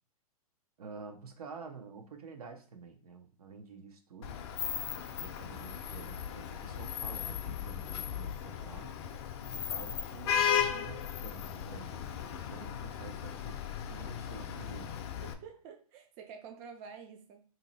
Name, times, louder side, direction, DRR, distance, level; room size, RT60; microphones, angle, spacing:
voice 1, 0.8-4.4 4.7-9.0 9.5-12.0 12.5-13.6 13.9-15.0, right 4 dB, 75° right, 0.9 m, -49 dB
Vehicle horn car horn honking / Traffic noise roadway noise, 4.2-15.3, left 8 dB, 45° left, 0.5 m, -36 dB
voice 2, 15.2-17.4, right 6 dB, 30° right, 0.4 m, -49 dB
3.0 x 2.7 x 3.9 m
hypercardioid pair, 145°, 19 cm